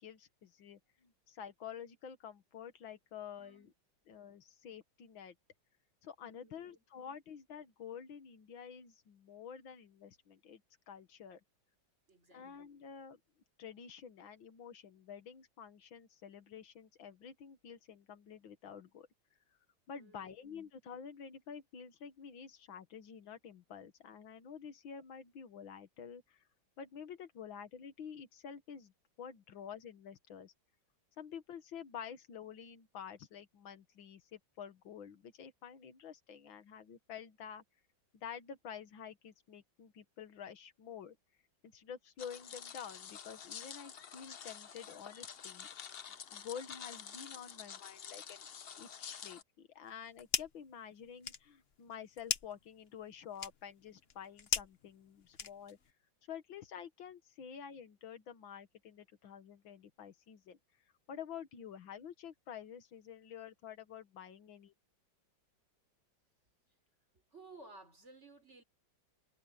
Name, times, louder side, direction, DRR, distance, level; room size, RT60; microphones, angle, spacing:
voice 1, 0.0-3.7 4.1-5.3 6.0-10.6 10.9-11.4 12.3-13.2 13.6-19.1 19.9-26.4 26.8-28.9 29.2-30.5 31.2-37.6 38.1-41.2 41.6-45.7 46.3-48.5 48.8-55.8 56.3-60.6 61.1-64.7, left 8 dB, 90° left, 2.2 m, -49 dB
voice 2, 3.4-3.7 6.4-6.8 12.1-12.5 20.0-20.4 67.1-68.6, right 3 dB, 35° right, 4.7 m, -57 dB
sound 1, 42.2-49.4, left 8 dB, 70° left, 0.5 m, -49 dB
sound 2, 49.8-50.7 51.0-55.9, left 6 dB, 45° left, 0.9 m, -40 dB
omnidirectional pair, 2.1 m